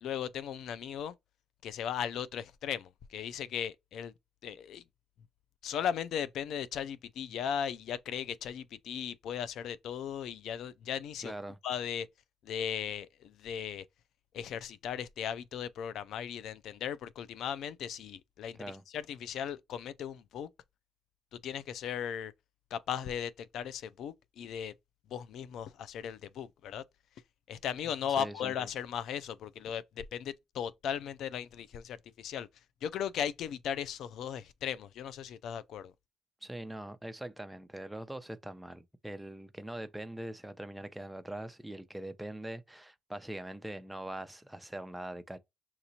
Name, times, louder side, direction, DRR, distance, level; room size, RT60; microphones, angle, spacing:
voice 1, 0.0-1.2 1.6-4.1 4.4-4.8 5.6-11.3 11.6-12.1 12.4-13.9 14.3-20.5 21.3-22.3 22.7-24.7 25.1-26.8 27.5-32.5 32.8-35.9, left 8 dB, 75° left, 0.3 m, -37 dB
voice 2, 11.2-11.6 18.6-18.8 28.2-28.5 36.4-45.4, right 1 dB, 5° right, 0.6 m, -42 dB
5.7 x 2.9 x 2.7 m
cardioid pair, 90°, 0 cm